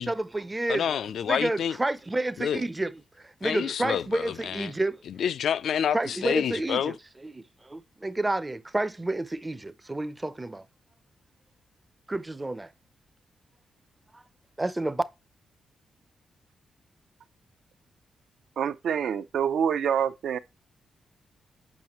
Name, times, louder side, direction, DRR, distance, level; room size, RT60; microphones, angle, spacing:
voice 1, 0.0-0.9 1.3-2.9 3.2-5.0 5.9-7.0 7.2-10.6 12.1-12.7 14.1-14.2 14.6-15.0, right 2 dB, 15° right, 0.5 m, -30 dB
voice 2, 0.7-1.8 2.4-2.6 3.4-4.7 5.1-6.9, left 8 dB, 70° left, 0.3 m, -28 dB
voice 3, 18.6-20.4, right 8 dB, 75° right, 0.5 m, -26 dB
7.3 x 5.6 x 2.9 m
wide cardioid pair, 150°, 0 cm